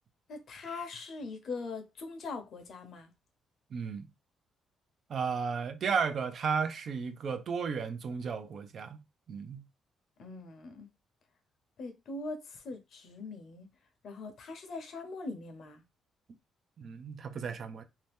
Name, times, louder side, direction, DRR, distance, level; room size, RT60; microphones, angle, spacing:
voice 1, 0.3-3.1 10.2-10.9 11.8-13.7 14.0-15.8, left 3 dB, 65° left, 0.8 m, -41 dB
voice 2, 3.7-4.1 5.1-9.0 9.3-9.6 16.8-17.8, right 6 dB, 55° right, 0.5 m, -34 dB
2.8 x 2.2 x 3.4 m
cardioid pair, 90°, 0 cm